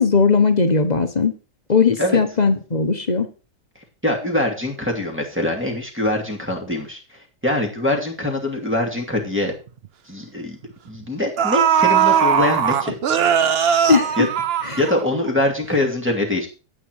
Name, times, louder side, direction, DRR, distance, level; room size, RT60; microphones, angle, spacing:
voice 1, 0.0-1.3 1.7-3.3 13.9-14.3 14.6-14.8, left 5 dB, 30° left, 6 dB, 1.1 m, -18 dB
voice 2, 4.0-7.0 7.4-9.5 10.1-10.6 10.9-13.0 14.2-14.3 14.8-16.5, left 1 dB, 5° right, 1 dB, 2.5 m, -23 dB
sound 1, 9.2-9.3 9.7-9.9 10.9-11.0 11.4-15.3 15.6-15.7, right 8 dB, 55° right, 0.7 m, -19 dB
9.3 x 8.9 x 4.7 m, 0.34 s
omnidirectional pair, 1.8 m